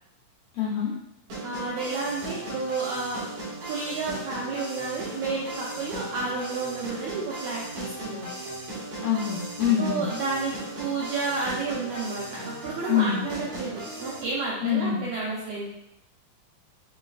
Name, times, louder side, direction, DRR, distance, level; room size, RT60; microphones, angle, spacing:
voice 1, 0.5-0.9 9.0-10.1 12.9-13.2 14.6-15.0, left 9 dB, 80° left, -6 dB, 1.6 m, -25 dB
sound 1, 1.3-14.2, right 1 dB, 60° right, 2.8 m, -37 dB
voice 2, 1.4-3.2 3.6-8.3 9.8-15.7, right 4 dB, 90° right, -5 dB, 1.6 m, -31 dB
6.6 x 3.2 x 2.4 m, 0.86 s
omnidirectional pair, 4.1 m